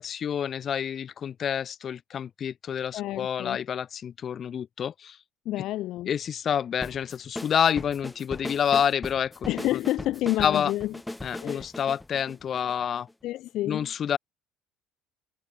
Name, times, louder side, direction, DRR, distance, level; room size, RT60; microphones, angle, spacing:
voice 1, 0.0-5.2 6.0-9.8 10.4-10.7 11.2-13.1 13.7-14.2, left 8 dB, 45° left, 4.6 m, -28 dB
voice 2, 2.9-3.6 5.5-6.1 9.5-10.9 11.4-11.7 13.2-13.9, left 15 dB, 65° left, 1.8 m, -29 dB
sound 1, 6.8-13.1, left 1 dB, 10° left, 5.8 m, -38 dB
supercardioid pair, 80°, 0 cm